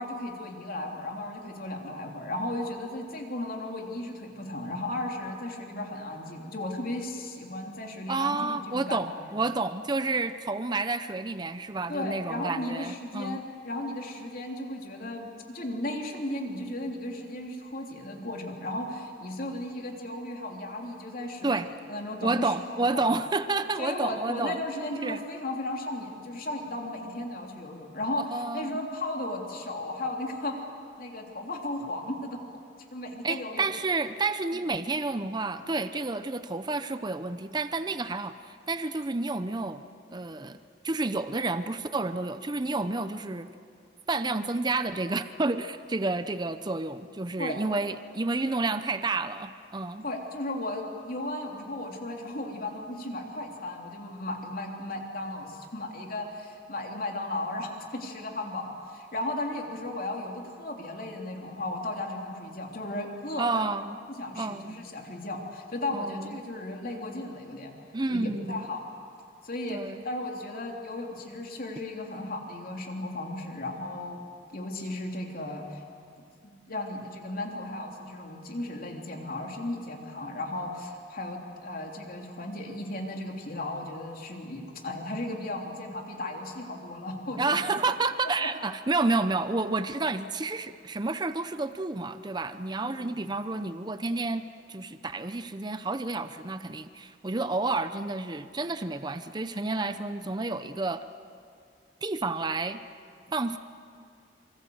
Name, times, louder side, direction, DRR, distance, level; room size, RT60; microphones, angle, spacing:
voice 1, 0.0-9.3 11.9-21.6 21.9-23.0 23.8-30.6 31.0-32.4 32.9-33.7 47.4-47.6 50.0-63.6 64.2-68.8 69.4-74.2 74.5-75.8 76.4-87.6 88.4-88.5 92.8-93.2, left 1 dB, 50° left, 1 dB, 3.3 m, -35 dB
voice 2, 8.1-13.4 21.4-21.7 22.2-24.6 25.0-25.2 28.3-28.8 33.2-39.8 40.1-40.6 40.8-43.5 44.1-50.1 63.4-64.0 64.4-64.8 65.9-66.4 67.9-68.7 69.7-70.0 87.4-101.0 102.0-102.8 103.3-103.6, right 3 dB, 25° right, 11 dB, 0.7 m, -30 dB
26.0 x 24.5 x 7.9 m, 2.4 s
head